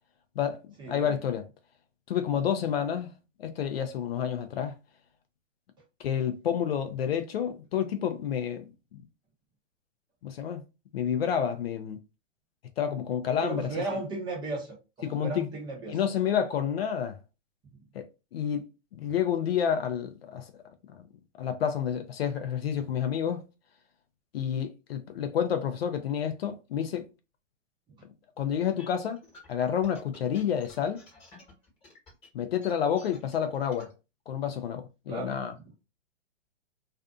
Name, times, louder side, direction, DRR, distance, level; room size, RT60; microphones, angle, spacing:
voice 1, 0.4-1.4 2.1-3.1 3.4-4.8 6.0-8.6 10.2-10.6 10.9-12.0 12.8-13.7 15.0-15.5 15.9-17.2 17.9-18.7 18.9-20.5 21.4-23.5 24.3-27.1 28.4-29.2 29.5-31.0 32.3-33.9 34.3-35.5, left 8 dB, 55° left, 0.5 m, -29 dB
voice 2, 13.4-16.0 35.1-35.4, right 3 dB, 10° right, 0.6 m, -35 dB
sound 1, 28.5-33.9, left 3 dB, 15° left, 1.1 m, -53 dB
2.5 x 2.4 x 2.4 m
hypercardioid pair, 130°, 38 cm